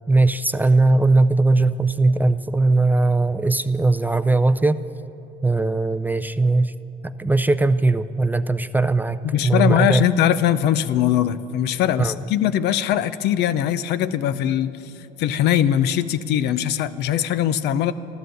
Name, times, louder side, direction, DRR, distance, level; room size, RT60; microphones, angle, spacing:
voice 1, 0.1-4.8 5.4-6.8 7.0-10.1 12.0-12.2, right 3 dB, 10° right, 11 dB, 0.4 m, -19 dB
voice 2, 9.2-14.9 15.2-17.9, left 10 dB, 80° left, 13 dB, 0.6 m, -21 dB
13.0 x 12.5 x 7.8 m, 2.8 s
cardioid pair, 110°, 17 cm